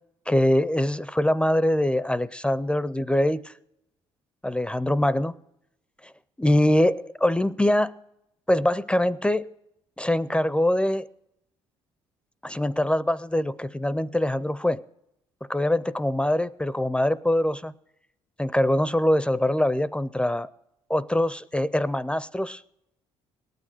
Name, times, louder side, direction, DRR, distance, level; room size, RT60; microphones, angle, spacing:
voice 1, 0.3-3.5 4.4-5.4 6.4-7.9 8.5-9.5 10.0-11.1 12.4-14.8 15.5-17.7 18.4-20.5 20.9-22.6, left 1 dB, 10° left, 18 dB, 0.4 m, -23 dB
18.0 x 6.6 x 8.9 m, 0.82 s
supercardioid pair, 75°, 12 cm